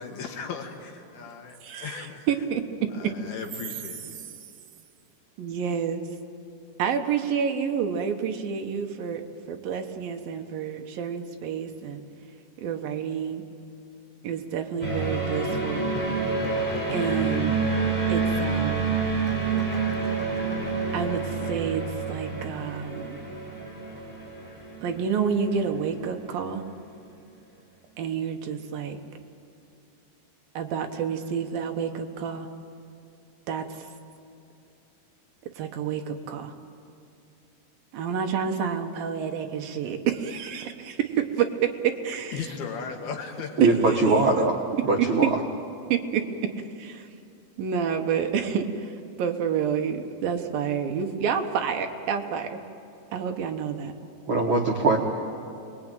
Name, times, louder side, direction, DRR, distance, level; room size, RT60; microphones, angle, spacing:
voice 1, 0.0-2.2 3.0-4.2 42.3-43.6, left 6 dB, 65° left, 3 dB, 3.5 m, -37 dB
voice 2, 1.6-3.1 5.4-6.0 6.8-9.2 9.5-12.0 12.6-13.4 14.2-15.8 16.9-17.6 18.1-18.9 20.9-23.2 24.8-26.6 28.0-29.0 30.5-32.5 33.5-33.9 35.6-36.5 37.9-42.5 43.6-44.0 45.0-45.1 45.9-46.2 46.8-47.1 47.6-52.6 53.1-53.9, right 7 dB, 65° right, 5 dB, 2.6 m, -29 dB
sound 1, 14.8-26.2, right 4 dB, 10° left, 5.2 m, -28 dB
voice 3, 43.6-44.6 44.9-45.3 54.3-55.0, right 3 dB, 85° right, 0 dB, 1.1 m, -21 dB
29.0 x 21.5 x 9.2 m, 2.5 s
omnidirectional pair, 5.1 m